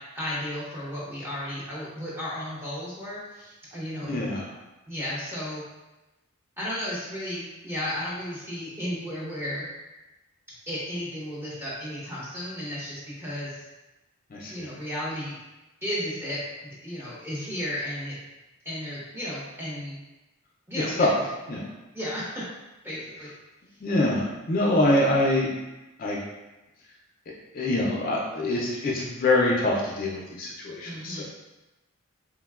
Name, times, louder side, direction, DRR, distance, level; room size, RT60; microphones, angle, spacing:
voice 1, 0.0-4.2 4.9-5.6 6.6-9.7 10.7-13.7 14.5-15.4 15.8-18.2 18.6-20.0 20.7-21.3 21.9-22.5 22.8-23.3 30.8-31.2, equal, 10° right, -7 dB, 0.6 m, -34 dB
voice 2, 4.1-4.5 14.3-14.7 21.0-21.1 21.5-21.6 23.8-25.5 26.0-26.2 27.5-31.2, left 1 dB, 40° left, -3 dB, 0.3 m, -24 dB
3.3 x 2.1 x 2.3 m, 1.0 s
head